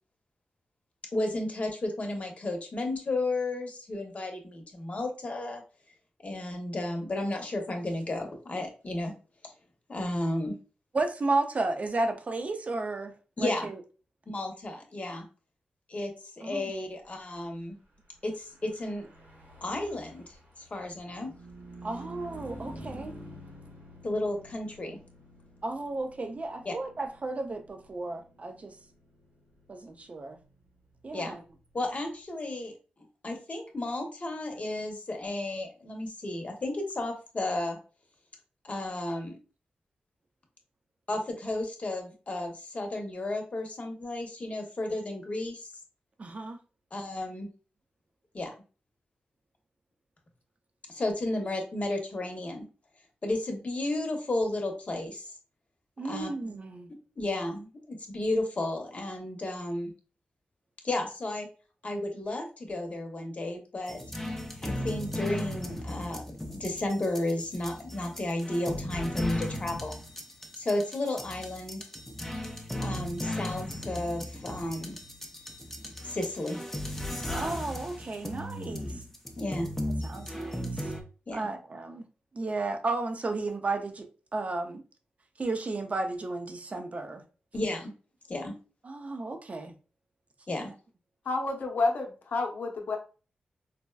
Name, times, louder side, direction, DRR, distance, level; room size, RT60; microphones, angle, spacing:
voice 1, 1.1-5.6 6.2-9.1 9.9-10.6 13.4-13.7 14.3-15.3 15.9-17.8 18.2-19.1 19.6-20.2 20.7-21.3 24.0-25.0 26.6-26.7 31.1-31.3 31.7-32.7 33.2-37.8 38.6-39.4 41.1-45.7 46.9-47.5 48.3-48.5 50.9-52.6 53.2-55.3 56.0-56.3 57.2-59.9 60.8-61.5 61.8-64.0 64.6-70.0 70.6-71.8 72.8-75.0 76.0-76.6 79.4-79.7 81.3-81.5 87.5-87.9 88.3-88.6 90.5-90.7, left 2 dB, 45° left, 0.9 m, -33 dB
voice 2, 10.9-13.8 16.4-16.7 21.8-23.1 25.6-28.8 29.7-30.4 31.0-31.4 46.2-46.6 56.0-56.9 77.3-79.0 80.0-80.9 81.3-82.0 82.3-84.8 85.4-87.2 88.8-89.7 90.6-90.7, right 3 dB, 45° right, 0.6 m, -33 dB
Car passing by / Truck, 18.3-32.0, right 1 dB, 70° right, 1.3 m, -50 dB
sound 1, 63.9-81.0, left 1 dB, 10° left, 0.6 m, -36 dB
voice 3, 91.2-93.0, left 3 dB, 70° left, 0.7 m, -29 dB
4.0 x 2.2 x 2.3 m
cardioid pair, 55°, 3 cm